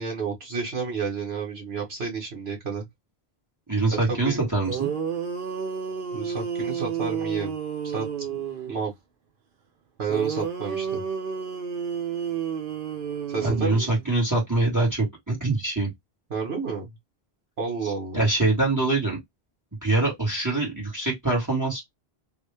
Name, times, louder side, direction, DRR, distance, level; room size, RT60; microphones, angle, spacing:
voice 1, 0.0-2.8 4.1-4.4 6.1-7.5 7.8-8.4 8.7-8.9 10.0-11.0 13.3-13.9 16.3-16.9 17.6-18.2, right 5 dB, 75° right, 1.6 m, -30 dB
voice 2, 3.7-4.9 13.4-15.9 17.8-19.2 19.8-21.8, right 2 dB, 15° right, 1.7 m, -24 dB
sound 1, 4.4-4.5 4.7-8.8 10.1-14.1, right 7 dB, 60° right, 0.9 m, -31 dB
3.2 x 2.6 x 3.3 m
omnidirectional pair, 1.1 m